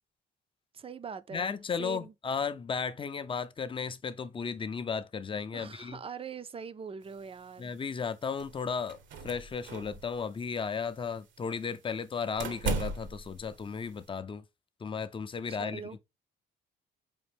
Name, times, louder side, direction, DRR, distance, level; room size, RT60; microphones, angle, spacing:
voice 1, 0.7-2.1 5.5-7.7 15.5-16.0, right 6 dB, 30° right, 0.4 m, -42 dB
voice 2, 1.3-6.0 7.6-9.0 9.2-14.4 14.8-15.8, left 6 dB, 25° left, 0.5 m, -35 dB
sound 1, 7.0-14.1, right 3 dB, 70° right, 0.8 m, -39 dB
5.1 x 2.5 x 3.4 m
cardioid pair, 90°, 20 cm